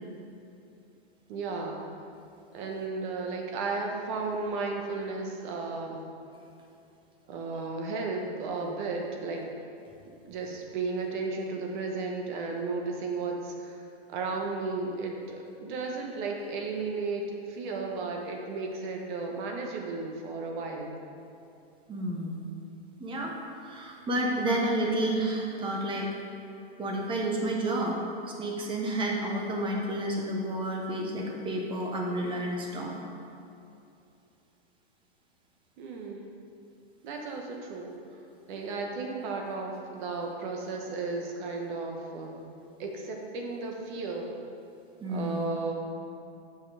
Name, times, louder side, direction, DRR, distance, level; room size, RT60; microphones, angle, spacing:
voice 1, 1.3-1.9 2.5-6.0 7.3-9.5 10.0-20.9 35.8-36.4 37.0-38.0 38.5-42.3 42.8-44.3 45.1-45.7, right 3 dB, 50° right, 1 dB, 1.4 m, -34 dB
voice 2, 21.9-22.4 23.0-23.3 23.6-26.1 26.8-28.0 28.3-32.9 45.0-45.5, right 1 dB, 15° right, 0 dB, 1.1 m, -30 dB
7.7 x 5.6 x 4.8 m, 2.7 s
hypercardioid pair, 135°, 32 cm